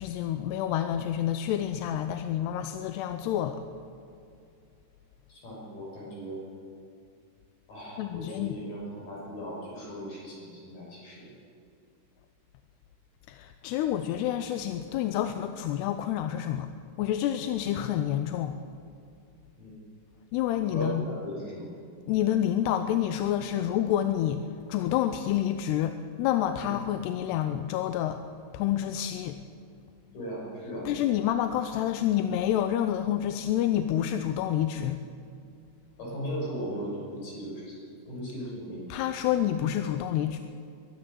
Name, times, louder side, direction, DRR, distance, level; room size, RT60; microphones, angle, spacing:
voice 1, 0.0-3.6 8.0-8.6 13.3-16.7 17.0-18.6 20.3-21.1 22.1-28.2 28.5-29.4 30.9-35.0 38.9-40.4, left 11 dB, 85° left, 8 dB, 2.8 m, -28 dB
voice 2, 5.3-6.4 7.7-11.3 19.6-19.8 20.7-21.6 26.6-26.7 30.1-30.9 36.0-37.7 38.1-38.8, equal, 55° left, -4 dB, 8.4 m, -37 dB
22.5 x 13.0 x 9.2 m, 2.5 s
omnidirectional pair, 4.7 m